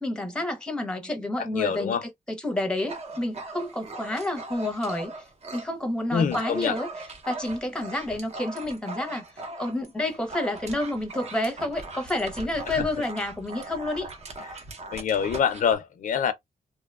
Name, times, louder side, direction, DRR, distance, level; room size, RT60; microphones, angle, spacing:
voice 1, 0.0-5.1 5.5-6.9 7.2-9.2 9.6-14.1, left 1 dB, 5° left, 0.7 m, -29 dB
voice 2, 1.5-2.0 6.1-6.7 12.7-12.9 14.9-16.3, left 7 dB, 65° left, 0.4 m, -25 dB
Dog, 2.8-5.7 6.1-15.7, right 2 dB, 50° right, 0.8 m, -40 dB
2.6 x 2.2 x 2.3 m
wide cardioid pair, 145°, 15 cm